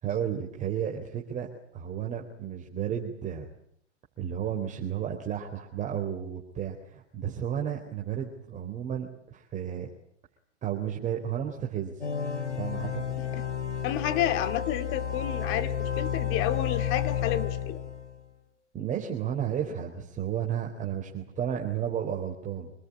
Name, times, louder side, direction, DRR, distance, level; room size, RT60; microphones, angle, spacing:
voice 1, 0.0-3.5 4.2-9.9 10.6-12.0 12.6-13.0 18.7-22.7, right 9 dB, 20° right, -1 dB, 3.8 m, -32 dB
sound 1, 12.0-18.1, left 8 dB, 85° left, 3.7 m, -31 dB
voice 2, 13.8-17.8, left 12 dB, 35° left, 9 dB, 2.6 m, -30 dB
26.5 x 20.0 x 9.8 m, 0.69 s
figure-of-eight pair, 110°, 35 cm